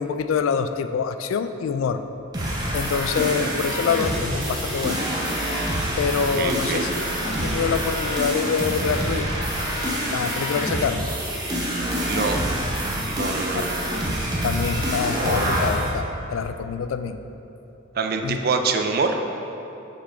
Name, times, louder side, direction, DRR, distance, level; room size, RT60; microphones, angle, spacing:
voice 1, 0.0-2.0 2.7-5.0 6.0-9.3 10.1-11.0 13.5-13.6 14.4-17.2 18.2-18.4, left 6 dB, 85° left, 11 dB, 0.3 m, -26 dB
sound 1, 2.3-15.9, equal, 20° right, 0.7 m, -26 dB
sound 2, 3.8-10.8, left 1 dB, 15° left, 1.1 m, -37 dB
voice 2, 6.3-6.9 12.0-12.4 13.1-13.8 17.9-19.2, right 4 dB, 50° right, 5 dB, 0.4 m, -25 dB
5.8 x 4.3 x 4.3 m, 3.0 s
head